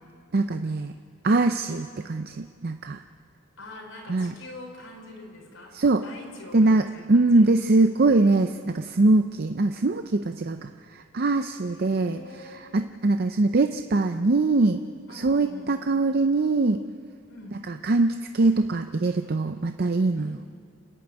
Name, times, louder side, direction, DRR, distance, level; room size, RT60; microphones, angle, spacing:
voice 1, 0.3-0.9 1.2-3.0 4.1-4.3 5.7-6.0 6.5-12.2 12.7-14.8 15.2-16.8 17.7-20.4, right 2 dB, 50° right, 7 dB, 0.6 m, -22 dB
voice 2, 3.6-7.5 11.7-12.8 15.1-15.9 17.3-17.6 20.1-20.4, left 2 dB, 80° left, 0 dB, 5.1 m, -44 dB
30.0 x 10.5 x 8.9 m, 2.2 s
head